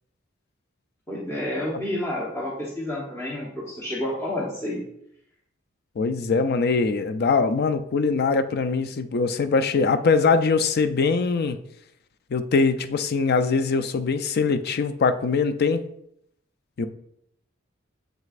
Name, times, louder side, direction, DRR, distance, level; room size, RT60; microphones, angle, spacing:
voice 1, 1.1-4.8, left 1 dB, 15° left, -5 dB, 1.0 m, -29 dB
voice 2, 6.0-11.6 12.3-15.8 16.8-16.9, left 4 dB, 50° left, 10 dB, 0.4 m, -22 dB
7.3 x 6.3 x 2.5 m, 0.74 s
head